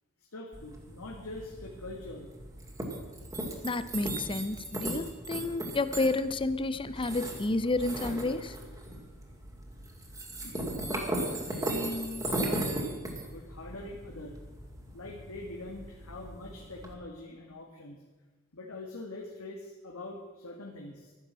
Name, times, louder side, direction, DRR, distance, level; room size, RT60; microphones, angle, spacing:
voice 1, 0.3-2.3 10.4-10.7 11.4-13.0 13.3-14.4 14.9-18.0 18.5-21.1, left 2 dB, 85° left, -1 dB, 1.9 m, -43 dB
sound 1, 0.5-16.9, right 1 dB, 15° right, 2.2 m, -37 dB
voice 2, 3.6-8.6, left 2 dB, 25° left, 13 dB, 0.6 m, -30 dB
12.5 x 10.5 x 7.5 m, 1.3 s
head